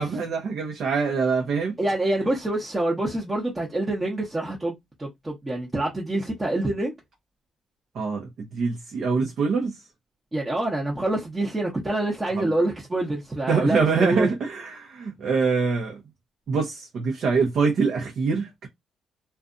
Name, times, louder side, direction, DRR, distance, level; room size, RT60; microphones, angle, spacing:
voice 1, 0.0-1.8 7.9-9.8 12.4-12.5 13.5-16.0 16.5-18.7, right 5 dB, 65° right, 0.7 m, -24 dB
voice 2, 1.8-4.7 5.0-6.9 10.3-14.3, right 1 dB, 20° right, 0.8 m, -26 dB
2.5 x 2.3 x 2.5 m
cardioid pair, 90°, 0 cm